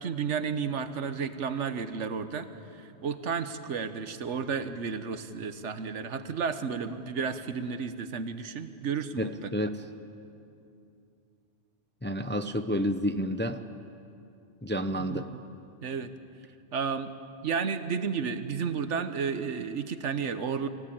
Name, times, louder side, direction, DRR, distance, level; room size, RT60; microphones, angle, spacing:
voice 1, 0.0-2.5 2.7-9.5 15.0-15.3 15.8-16.1 16.7-17.1 17.4-20.7, right 6 dB, 80° right, 10 dB, 1.3 m, -32 dB
voice 2, 9.2-9.8 12.0-13.6 14.6-15.3, equal, 15° left, 9 dB, 0.4 m, -30 dB
24.0 x 16.5 x 8.7 m, 2.7 s
omnidirectional pair, 1.2 m